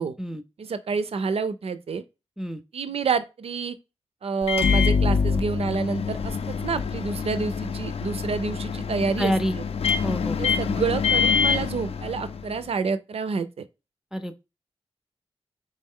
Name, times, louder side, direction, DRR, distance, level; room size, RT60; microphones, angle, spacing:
voice 1, 0.6-2.0 2.7-3.8 4.2-9.6 10.4-13.6, right 5 dB, 65° right, 0.5 m, -28 dB
Microwave oven, 4.4-12.6, left 6 dB, 70° left, 0.4 m, -25 dB
voice 2, 9.2-9.5 10.0-10.6 14.1-14.5, equal, 5° right, 0.4 m, -28 dB
3.7 x 3.1 x 3.6 m
cardioid pair, 65°, 11 cm